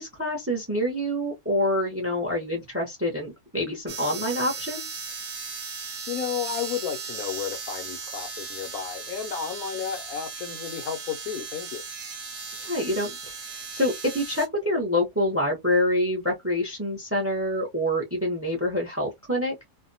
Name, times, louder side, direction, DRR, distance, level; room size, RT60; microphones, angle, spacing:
voice 1, 0.0-5.1 12.6-13.1 13.7-19.6, left 1 dB, 15° right, 0.6 m, -26 dB
sound 1, 3.9-14.5, right 5 dB, 50° right, 0.7 m, -37 dB
voice 2, 6.1-11.8, left 8 dB, 75° left, 1.0 m, -32 dB
2.6 x 2.1 x 2.6 m
omnidirectional pair, 1.6 m